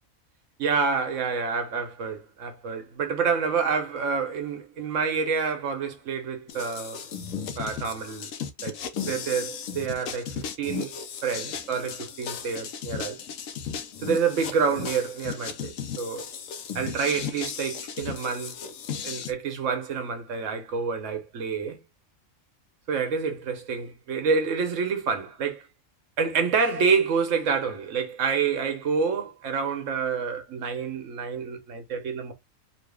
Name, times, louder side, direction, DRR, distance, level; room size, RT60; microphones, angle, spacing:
voice 1, 0.6-7.1 7.6-8.3 8.6-11.0 11.2-13.2 14.0-16.2 16.7-18.6 19.0-21.8 22.9-25.6 26.2-32.3, right 5 dB, 70° right, 1.2 m, -28 dB
sound 1, 6.5-19.3, left 7 dB, 80° left, 1.0 m, -35 dB
3.1 x 2.6 x 3.2 m
omnidirectional pair, 1.4 m